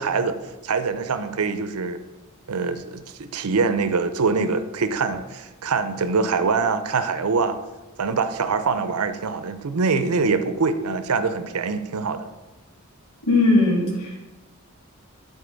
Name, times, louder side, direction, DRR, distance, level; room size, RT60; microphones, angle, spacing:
voice 1, 0.0-2.0 2.5-7.6 8.0-12.3, right 4 dB, 80° right, 11 dB, 0.6 m, -24 dB
voice 2, 13.3-14.2, left 2 dB, 85° left, -2 dB, 2.4 m, -19 dB
12.0 x 4.1 x 4.0 m, 1.1 s
head